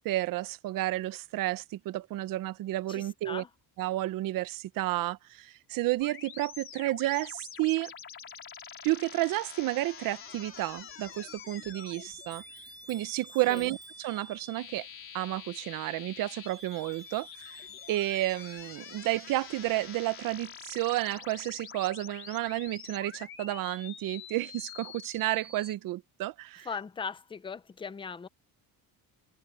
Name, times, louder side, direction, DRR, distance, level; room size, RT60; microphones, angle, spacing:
voice 1, 0.0-3.4 3.8-7.9 8.8-12.4 12.9-14.9 15.1-26.7, right 17 dB, 65° right, 0.7 m, -31 dB
voice 2, 2.9-3.5 13.5-13.7 26.6-28.3, left 5 dB, 15° left, 0.6 m, -39 dB
sound 1, 6.0-25.7, left 6 dB, 35° left, 3.7 m, -46 dB
Clock, 10.5-19.8, right 4 dB, 20° right, 2.2 m, -62 dB
cardioid pair, 170°, 36 cm